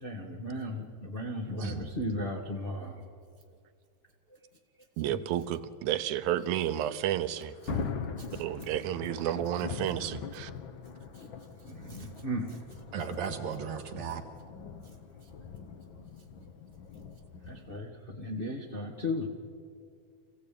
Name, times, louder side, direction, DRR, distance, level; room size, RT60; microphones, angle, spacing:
voice 1, 0.0-3.0 5.1-5.2 8.2-8.4 11.1-11.3 11.6-12.6 17.5-19.3, left 1 dB, 25° left, 0 dB, 1.2 m, -36 dB
voice 2, 1.6-2.0 12.9-14.2, right 5 dB, 70° right, 5 dB, 2.7 m, -35 dB
voice 3, 5.0-7.8 8.4-10.5, right 11 dB, 85° right, 12 dB, 2.2 m, -31 dB
Thunder, 7.1-17.8, left 5 dB, 55° left, 1.6 m, -42 dB
26.5 x 16.0 x 8.6 m, 2.2 s
omnidirectional pair, 3.4 m